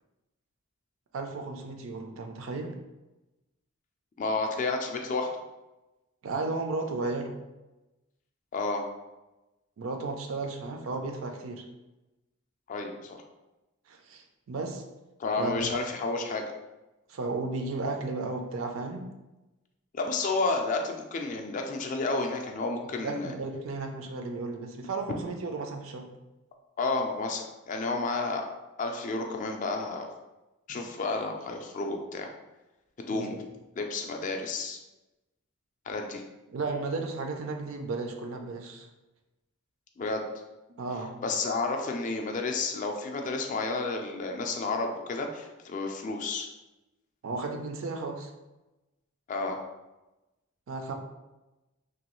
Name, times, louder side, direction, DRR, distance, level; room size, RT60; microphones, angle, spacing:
voice 1, 1.1-2.8 6.2-7.3 9.8-11.6 13.9-14.8 15.4-15.7 17.1-19.1 23.0-26.1 30.7-30.8 33.1-33.4 36.5-38.9 40.8-41.2 47.2-48.3 50.7-50.9, right 3 dB, 70° right, 4 dB, 0.4 m, -34 dB
voice 2, 4.2-5.3 8.5-8.8 12.7-13.2 15.2-16.5 19.9-23.3 26.8-28.4 28.8-30.1 30.7-32.3 33.0-33.4 33.8-34.8 35.9-36.2 40.0-40.2 41.2-46.5 49.3-49.6, left 3 dB, 35° left, 3 dB, 0.3 m, -31 dB
3.0 x 2.2 x 3.0 m, 1.0 s
head